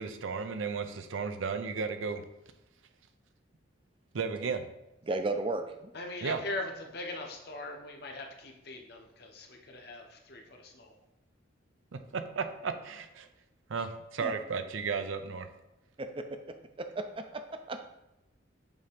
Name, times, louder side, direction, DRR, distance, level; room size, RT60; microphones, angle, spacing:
voice 1, 0.0-2.2 4.1-4.7 6.2-6.4 11.9-13.3 13.7-15.5, right 5 dB, 85° right, 8 dB, 0.6 m, -34 dB
voice 2, 5.1-5.9 14.2-14.3 16.0-16.2 16.8-17.4 17.7-17.8, right 2 dB, 25° right, 7 dB, 0.5 m, -34 dB
voice 3, 5.9-10.9, left 2 dB, 55° left, 2 dB, 0.9 m, -41 dB
7.1 x 2.8 x 5.1 m, 0.91 s
head